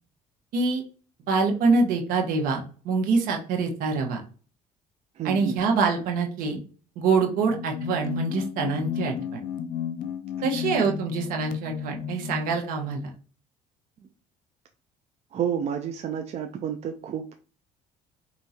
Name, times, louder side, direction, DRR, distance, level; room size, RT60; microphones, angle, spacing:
voice 1, 1.3-4.2 5.2-6.6 7.0-9.4 10.4-13.1, right 4 dB, 75° right, 3 dB, 1.2 m, -25 dB
voice 2, 5.2-5.6 10.6-10.7 15.3-17.4, right 8 dB, 45° right, 4 dB, 0.6 m, -30 dB
sound 1, 7.3-12.6, left 8 dB, 70° left, 0.7 m, -33 dB
4.9 x 2.8 x 2.8 m, 0.38 s
cardioid pair, 100°, 15 cm